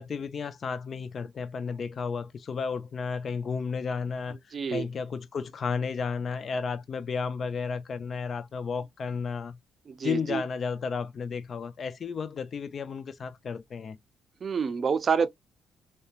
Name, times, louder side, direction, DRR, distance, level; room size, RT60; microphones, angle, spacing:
voice 1, 0.0-4.4 4.7-9.6 10.0-14.0, left 5 dB, 50° left, 0.3 m, -33 dB
voice 2, 4.5-4.9 9.9-10.4 14.4-15.3, right 6 dB, 45° right, 0.4 m, -27 dB
2.8 x 2.1 x 2.3 m
cardioid pair, 90°, 0 cm